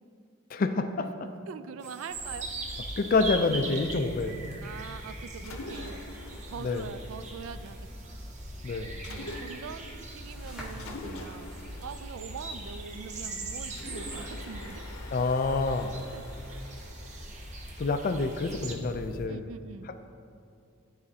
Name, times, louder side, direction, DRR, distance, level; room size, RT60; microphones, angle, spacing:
voice 1, 0.5-1.3 3.0-4.4 6.6-6.9 8.6-9.0 15.1-16.0 17.8-19.5, left 3 dB, 40° left, 8 dB, 0.3 m, -28 dB
voice 2, 1.5-2.5 4.6-6.1 6.5-7.8 8.0-8.2 9.1-11.5 11.8-14.8 16.1-16.2 16.5-16.7 19.3-20.0, right 6 dB, 75° right, 12 dB, 0.3 m, -43 dB
sound 1, 1.8-18.7, right 3 dB, 35° right, 0.6 m, -43 dB
sound 2, 2.1-19.3, left 1 dB, 5° right, 1.1 m, -44 dB
Mechanisms, 5.4-7.9 9.0-9.9 10.8-13.1 13.7-17.9, left 2 dB, 90° left, 0.7 m, -45 dB
12.0 x 4.2 x 2.7 m, 2.4 s
head